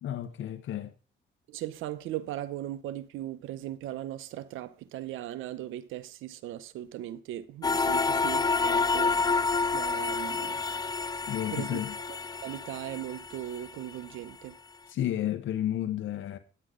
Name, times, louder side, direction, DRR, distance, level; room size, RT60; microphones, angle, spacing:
voice 1, 0.0-0.9 11.3-12.0 14.9-16.4, left 11 dB, 75° left, 0.9 m, -32 dB
voice 2, 1.5-9.3 9.7-10.6 11.5-11.8 12.1-14.6, right 13 dB, 85° right, 0.7 m, -38 dB
sound 1, 7.6-13.9, left 4 dB, 20° left, 0.4 m, -29 dB
9.6 x 9.5 x 3.7 m
cardioid pair, 90°, 20 cm